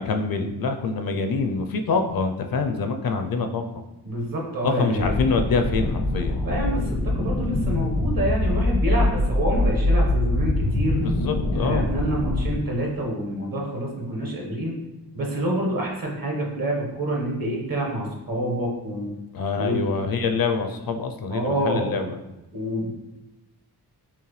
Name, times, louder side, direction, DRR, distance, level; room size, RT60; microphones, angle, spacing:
voice 1, 0.0-3.6 4.6-6.4 11.0-11.9 19.3-22.2, left 4 dB, 60° left, 6 dB, 0.5 m, -25 dB
voice 2, 4.0-5.2 6.4-11.0 11.5-14.7 15.1-19.1 19.6-19.9 21.3-21.9 22.5-22.9, right 1 dB, 60° right, -1 dB, 1.2 m, -27 dB
sound 1, 4.9-12.6, left 1 dB, 85° left, 0.9 m, -24 dB
5.7 x 2.2 x 3.1 m, 0.99 s
wide cardioid pair, 85°, 39 cm